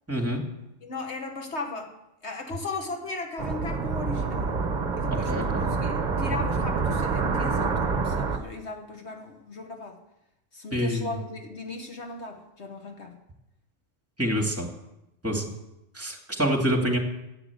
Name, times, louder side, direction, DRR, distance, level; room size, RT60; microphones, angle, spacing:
voice 1, 0.1-0.4 5.1-5.6 10.7-11.1 14.2-14.7 15.2-15.4 15.9-17.0, equal, 10° right, 2 dB, 2.2 m, -26 dB
voice 2, 0.8-1.9 2.2-4.5 5.0-10.0 10.5-13.2, left 3 dB, 55° left, 3 dB, 1.7 m, -37 dB
sound 1, 3.4-8.4, right 4 dB, 40° right, 1.0 m, -27 dB
11.0 x 8.7 x 8.2 m, 0.88 s
omnidirectional pair, 1.4 m